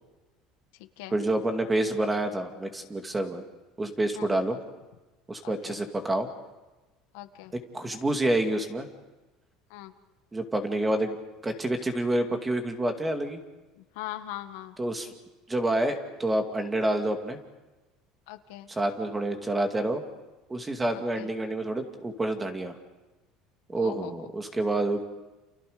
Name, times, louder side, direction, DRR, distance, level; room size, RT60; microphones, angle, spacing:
voice 1, 1.1-3.4 3.8-4.6 5.3-6.3 7.7-8.9 10.3-11.2 11.4-13.4 14.8-15.1 15.5-17.4 18.7-20.0 20.5-22.8 23.7-25.0, right 1 dB, 10° right, 5 dB, 2.4 m, -28 dB
voice 2, 5.4-5.8 7.1-7.5 9.7-9.9 13.8-14.7 18.3-18.7 20.9-21.3 23.7-24.3, left 14 dB, 85° left, 8 dB, 1.7 m, -41 dB
29.5 x 29.0 x 5.2 m, 1.1 s
cardioid pair, 155°, 0 cm